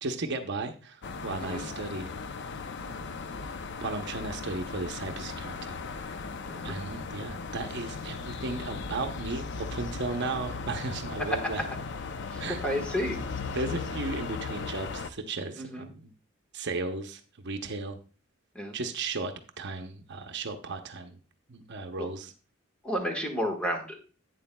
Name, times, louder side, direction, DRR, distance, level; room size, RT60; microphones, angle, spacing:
voice 1, 0.0-2.1 2.9-3.2 3.8-6.2 6.6-11.6 12.4-12.6 13.5-16.1 16.5-18.0 18.7-21.2 21.5-22.3, right 3 dB, 60° right, 6 dB, 0.8 m, -35 dB
sound 1, 1.0-15.1, left 4 dB, 60° left, 0.5 m, -37 dB
voice 2, 1.4-1.7 6.5-6.8 12.3-13.2 15.6-15.9 18.5-18.8 22.0-22.1 22.8-24.0, equal, 5° left, 1 dB, 1.4 m, -32 dB
11.5 x 8.5 x 2.2 m, 0.38 s
head